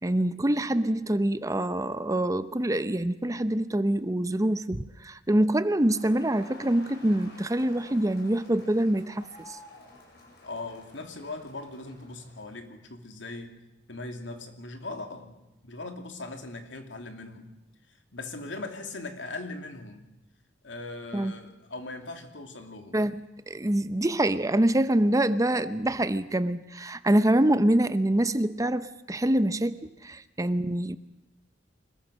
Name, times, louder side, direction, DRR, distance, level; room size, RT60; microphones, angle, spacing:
voice 1, 0.0-9.3 21.1-21.3 22.9-23.2 23.5-31.0, right 1 dB, 20° right, 0.7 m, -25 dB
Crowd, 5.6-12.7, left 2 dB, 60° left, 6.4 m, -52 dB
voice 2, 10.4-13.5 13.9-15.3 15.6-17.5 17.9-20.0 20.6-23.0, left 2 dB, 85° left, 2.9 m, -40 dB
25.5 x 21.0 x 6.4 m
head